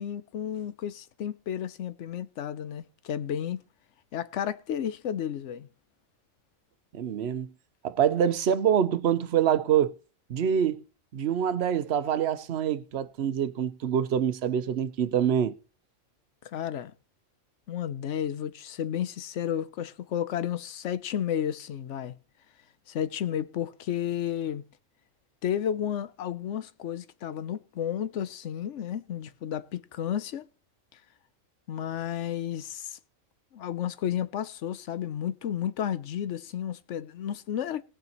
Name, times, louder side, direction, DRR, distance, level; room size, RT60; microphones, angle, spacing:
voice 1, 0.0-3.6 4.1-5.7 16.4-16.9 17.7-22.2 22.9-24.6 25.4-30.5 31.7-33.0 33.5-37.8, left 9 dB, 70° left, 1.0 m, -32 dB
voice 2, 6.9-7.5 7.8-9.9 10.3-10.8 11.1-15.6, right 9 dB, 60° right, 0.9 m, -25 dB
18.5 x 6.7 x 4.3 m
omnidirectional pair, 1.3 m